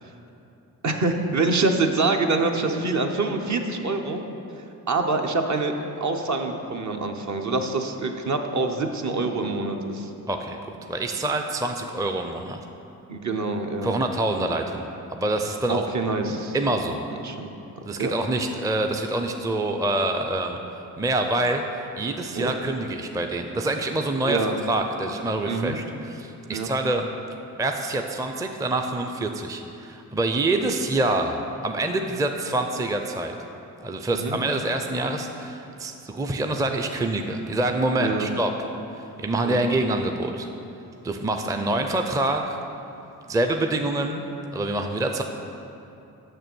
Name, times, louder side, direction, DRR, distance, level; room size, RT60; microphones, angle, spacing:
voice 1, 0.8-4.2 4.9-10.1 13.1-13.9 15.7-16.6 17.2-17.5 17.8-18.1 22.3-22.5 24.2-24.6 25.5-25.8 26.5-26.7 34.1-34.4 38.0-38.3 39.4-39.6, right 3 dB, 50° right, 4 dB, 0.9 m, -25 dB
voice 2, 10.3-12.6 13.8-15.9 16.5-17.0 17.9-20.6 21.0-27.1 27.6-33.3 33.8-38.5 39.2-40.5 41.0-42.6 43.3-44.3 44.5-45.2, right 2 dB, 10° right, 5 dB, 0.5 m, -26 dB
6.7 x 6.3 x 6.1 m, 2.8 s
cardioid pair, 65°, 38 cm